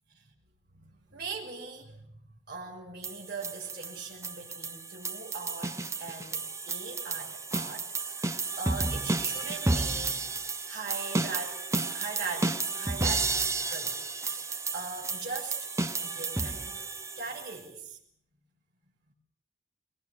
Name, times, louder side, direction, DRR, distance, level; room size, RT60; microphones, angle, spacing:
voice 1, 0.7-2.1 2.5-10.3 10.7-16.9 17.1-18.0 19.1-19.2, right 4 dB, 55° right, -3 dB, 6.0 m, -41 dB
sound 1, 3.0-17.6, right 3 dB, 15° right, 0.9 m, -32 dB
22.5 x 22.5 x 8.4 m, 0.71 s
head